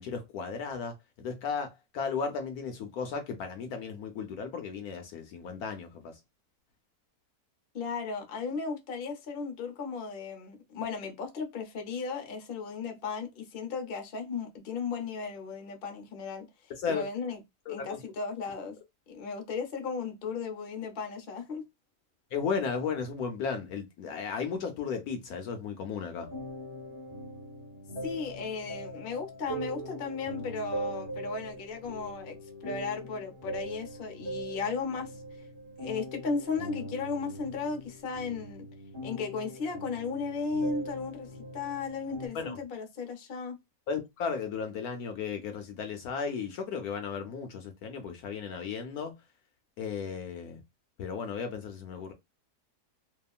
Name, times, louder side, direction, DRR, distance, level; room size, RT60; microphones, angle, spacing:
voice 1, 0.0-6.2 16.8-17.1 17.7-18.0 22.3-26.3 42.3-42.6 43.9-49.1 49.8-50.6 51.0-52.1, left 6 dB, 70° left, 1.0 m, -35 dB
voice 2, 7.7-16.4 16.9-17.4 17.7-18.7 19.1-21.6 28.0-32.4 32.6-35.1 35.8-38.7 39.0-43.6, left 5 dB, 50° left, 0.7 m, -35 dB
sound 1, 26.2-42.3, right 1 dB, 25° right, 0.7 m, -41 dB
2.8 x 2.3 x 2.3 m
omnidirectional pair, 1.8 m